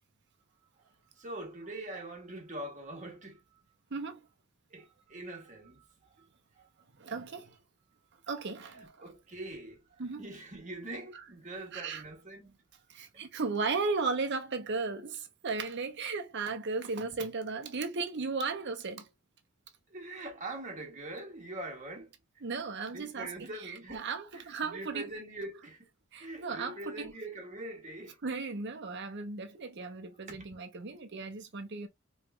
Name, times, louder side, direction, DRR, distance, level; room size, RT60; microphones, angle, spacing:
voice 1, 1.2-3.4 4.7-5.8 6.2-6.3 6.6-6.7 8.7-9.8 10.2-12.6 19.9-22.1 22.9-25.9 26.2-28.2 30.3-30.4, right 1 dB, 35° right, 1.3 m, -43 dB
voice 2, 7.0-7.5 8.3-9.1 10.0-10.2 11.7-12.0 12.9-19.1 22.4-23.3 23.6-25.1 26.1-27.1 28.2-31.9, right 4 dB, 55° right, 0.8 m, -35 dB
4.6 x 3.2 x 2.3 m
head